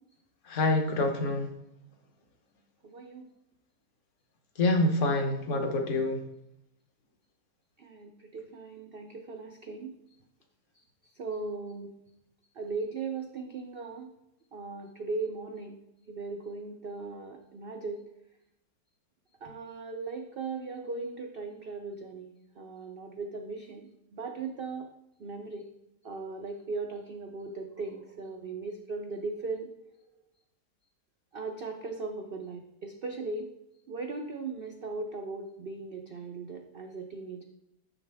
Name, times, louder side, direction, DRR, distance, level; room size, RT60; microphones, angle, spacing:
voice 1, 0.5-1.5 4.6-6.2, left 2 dB, 50° left, 4 dB, 1.2 m, -26 dB
voice 2, 2.8-3.3 7.8-10.0 11.2-11.9 12.6-14.1 14.5-15.8 16.1-18.0 19.4-24.9 25.2-25.7 26.0-29.7 31.3-33.5 33.9-37.4, right 3 dB, 90° right, 3 dB, 0.5 m, -38 dB
6.9 x 6.2 x 3.4 m, 0.84 s
omnidirectional pair, 1.8 m